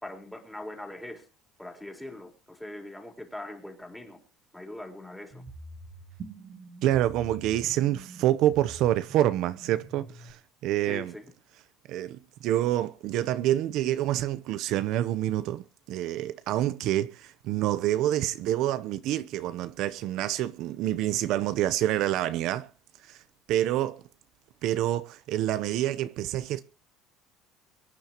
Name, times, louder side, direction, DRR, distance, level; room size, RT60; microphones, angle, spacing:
voice 1, 0.0-1.3 1.6-4.2 4.5-5.4 10.9-11.3, left 1 dB, 5° left, 4.2 m, -41 dB
sound 1, 5.3-10.3, right 3 dB, 40° right, 2.9 m, -45 dB
voice 2, 6.8-11.1 11.9-15.6 15.9-22.7 23.1-23.2 23.5-24.0 24.6-26.6, right 13 dB, 65° right, 0.8 m, -27 dB
24.0 x 10.5 x 3.0 m
cardioid pair, 130°, 0 cm